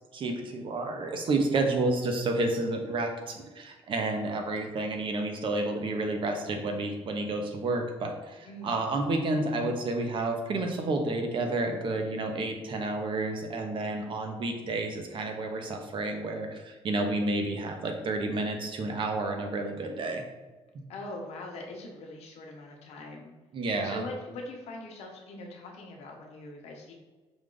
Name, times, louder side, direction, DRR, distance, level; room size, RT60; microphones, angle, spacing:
voice 1, 0.1-20.2 23.5-24.0, right 2 dB, 50° right, 4 dB, 0.8 m, -30 dB
voice 2, 8.4-8.8 20.9-23.3 23.8-26.9, left 2 dB, 70° left, 0 dB, 0.8 m, -42 dB
5.2 x 2.4 x 3.8 m, 1.3 s
cardioid pair, 105°, 11 cm